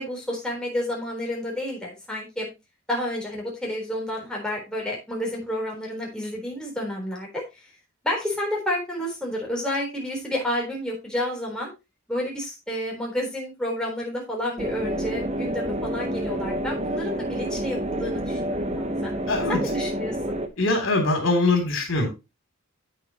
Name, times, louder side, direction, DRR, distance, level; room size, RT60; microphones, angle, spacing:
voice 1, 0.0-2.5 2.9-7.6 8.0-11.7 12.1-19.1 19.5-20.2, left 1 dB, 5° left, -2 dB, 3.9 m, -30 dB
sound 1, 14.6-20.5, equal, 30° right, 1.1 m, -28 dB
voice 2, 19.3-19.6 20.6-22.1, left 2 dB, 70° left, 3 dB, 3.2 m, -22 dB
8.8 x 8.7 x 3.0 m, 0.25 s
head